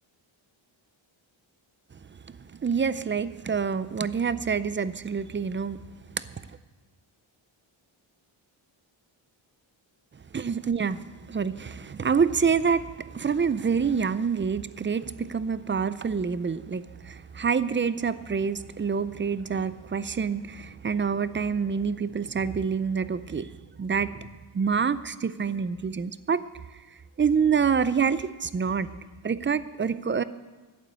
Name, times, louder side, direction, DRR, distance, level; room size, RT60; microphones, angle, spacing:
voice 1, 2.6-5.8 10.3-11.0 11.3-23.5 23.8-24.2 24.5-26.4 27.2-28.9 29.2-30.2, right 6 dB, 25° right, 15 dB, 0.4 m, -27 dB
12.0 x 8.4 x 8.5 m, 1.3 s
wide cardioid pair, 125°, 48 cm